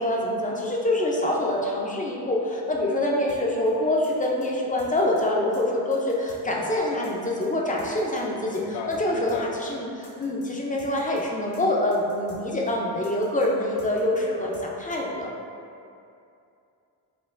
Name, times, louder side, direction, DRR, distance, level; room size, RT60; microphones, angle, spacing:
voice 1, 0.0-15.3, left 1 dB, 20° left, -2 dB, 0.5 m, -25 dB
sound 1, 3.3-3.4 3.7-3.8 4.0-4.5 4.8-5.2 5.5-5.6 5.9-6.4 6.7-6.8 7.0-7.5 7.8-8.2 8.5-8.6 8.9-9.0 9.3-9.4 9.7-9.8 10.0-10.5 10.8-11.2 11.5-11.6 11.9-12.4 12.7-12.8 13.0-13.5 13.8-14.2 14.5-14.7 14.9-15.0, left 2 dB, 55° left, 1.0 m, -50 dB
sound 2, 5.5-9.9, right 6 dB, 65° right, 0.7 m, -44 dB
voice 2, 8.6-9.6, left 4 dB, 85° left, 3 dB, 0.5 m, -36 dB
4.3 x 2.5 x 2.5 m, 2.6 s
cardioid pair, 90°, 41 cm